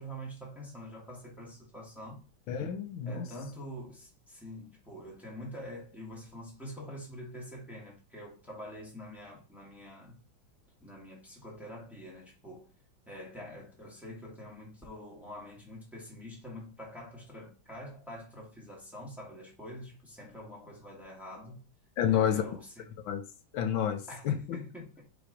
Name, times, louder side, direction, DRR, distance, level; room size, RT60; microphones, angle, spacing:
voice 1, 0.0-2.2 3.1-10.2 10.8-12.7 13.1-21.7 22.1-22.9 24.1-25.0, equal, ahead, 2.0 m, -45 dB
voice 2, 2.5-3.3 22.0-22.4 23.1-23.2 23.5-24.3, left 9 dB, 85° left, 1.6 m, -29 dB
5.1 x 4.0 x 4.9 m
omnidirectional pair, 2.2 m